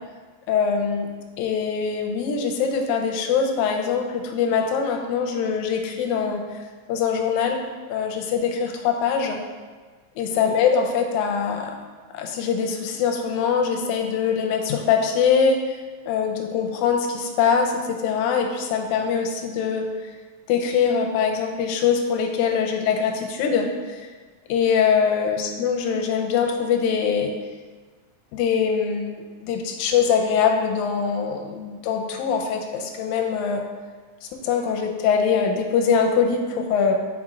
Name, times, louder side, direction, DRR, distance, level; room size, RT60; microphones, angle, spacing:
voice 1, 0.5-1.1 1.4-6.4 6.9-7.6 7.9-9.4 10.2-11.7 12.1-15.8 16.1-19.9 20.5-24.0 24.5-27.3 28.3-33.6 34.4-36.9, left 6 dB, 80° left, 2 dB, 1.8 m, -23 dB
6.0 x 4.4 x 3.8 m, 1.4 s
omnidirectional pair, 3.9 m